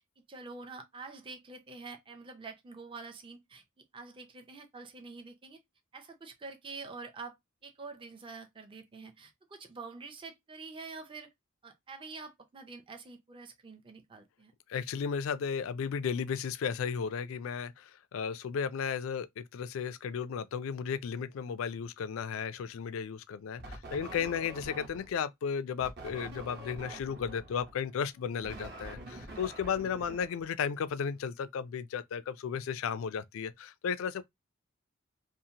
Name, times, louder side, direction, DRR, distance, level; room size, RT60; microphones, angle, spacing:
voice 1, 0.3-3.6 3.9-5.6 5.9-7.4 7.6-11.3 11.6-14.5, right 4 dB, 25° right, 0.5 m, -46 dB
voice 2, 14.7-34.2, left 7 dB, 70° left, 0.3 m, -34 dB
sound 1, 23.6-25.2 25.8-30.9, right 1 dB, 55° right, 0.9 m, -46 dB
2.7 x 2.4 x 2.7 m
head